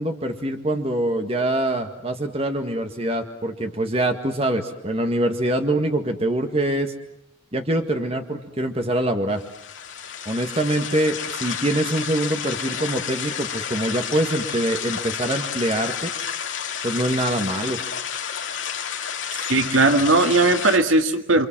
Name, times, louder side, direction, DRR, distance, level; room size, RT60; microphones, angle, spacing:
voice 1, 0.0-6.9 7.5-9.4 10.3-16.1 16.8-17.8, right 1 dB, 30° right, 5 dB, 1.9 m, -24 dB
sound 1, 9.4-20.8, left 8 dB, 70° left, 2.6 m, -30 dB
voice 2, 19.3-21.5, right 2 dB, 80° right, 6 dB, 1.9 m, -18 dB
28.5 x 25.5 x 7.5 m, 0.75 s
head